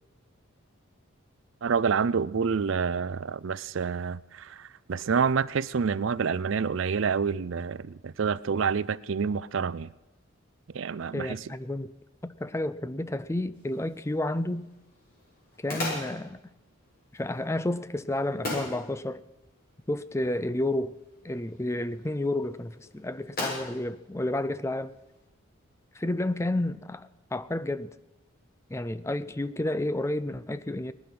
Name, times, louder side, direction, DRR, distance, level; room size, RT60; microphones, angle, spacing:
voice 1, 1.6-9.9 10.7-11.4, right 6 dB, 65° right, 0.4 m, -28 dB
voice 2, 11.1-11.9 12.2-14.7 15.6-16.4 17.1-19.2 19.9-21.0 21.2-24.9 25.9-27.9 28.7-30.9, left 1 dB, 15° left, 0.4 m, -31 dB
sound 1, 13.5-25.2, left 2 dB, 45° left, 7.3 m, -41 dB
19.0 x 12.0 x 6.0 m
head